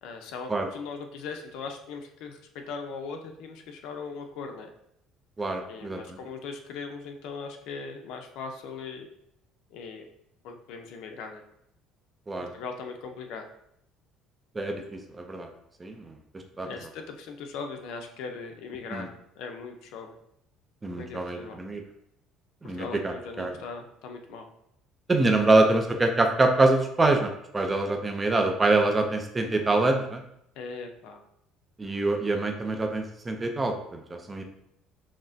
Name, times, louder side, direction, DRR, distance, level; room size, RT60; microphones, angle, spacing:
voice 1, 0.0-4.7 5.7-9.1 9.7-10.1 10.4-11.4 12.4-13.5 16.6-19.1 19.4-20.2 21.0-21.6 22.6-24.5 30.6-31.2, left 4 dB, 75° left, 4 dB, 0.6 m, -39 dB
voice 2, 5.4-6.2 12.3-12.5 14.5-14.8 15.2-15.5 15.8-16.1 16.6-16.7 18.9-19.1 20.8-21.8 22.6-23.5 25.1-30.2 31.8-34.4, right 2 dB, 15° right, 4 dB, 0.5 m, -25 dB
5.9 x 2.1 x 2.6 m, 0.75 s
cardioid pair, 145°, 0 cm